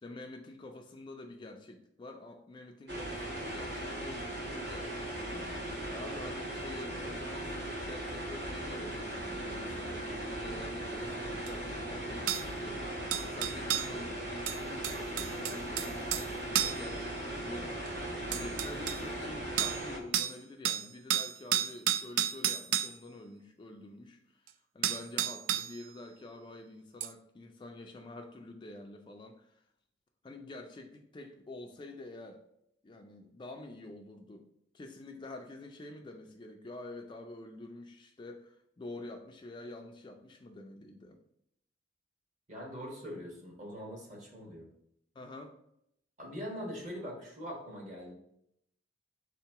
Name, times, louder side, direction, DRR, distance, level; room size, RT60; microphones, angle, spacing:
voice 1, 0.0-24.2 24.7-29.5 30.2-32.4 32.8-34.5 34.7-41.2 45.2-45.6, left 2 dB, 25° left, 4 dB, 0.3 m, -47 dB
sound 1, 2.9-20.0, right 1 dB, 65° right, 1.0 m, -38 dB
sound 2, 11.5-11.6 12.3-12.4 13.1-13.9 14.5-16.3 16.5-16.9 17.9-18.0 18.3-19.0 19.6-19.8 20.1-20.4 20.6-22.9 24.5-24.6 24.8-25.8 27.0-27.1, right 11 dB, 90° right, 0.3 m, -31 dB
voice 2, 42.5-44.7 46.2-48.1, equal, 40° right, 0 dB, 1.1 m, -42 dB
3.7 x 2.9 x 4.5 m, 0.74 s
head